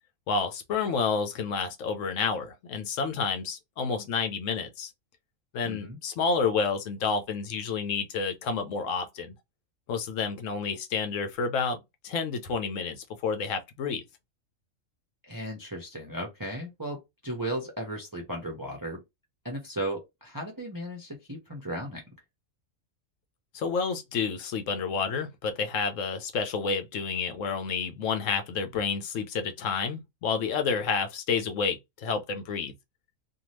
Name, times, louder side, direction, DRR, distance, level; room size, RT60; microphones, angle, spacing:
voice 1, 0.3-4.9 5.5-9.3 9.9-11.8 12.0-14.0 23.5-32.7, left 5 dB, 75° left, 1.0 m, -29 dB
voice 2, 5.6-6.0 15.3-19.0 19.4-22.0, right 1 dB, 25° right, 0.4 m, -35 dB
2.7 x 2.3 x 3.1 m
omnidirectional pair, 1.4 m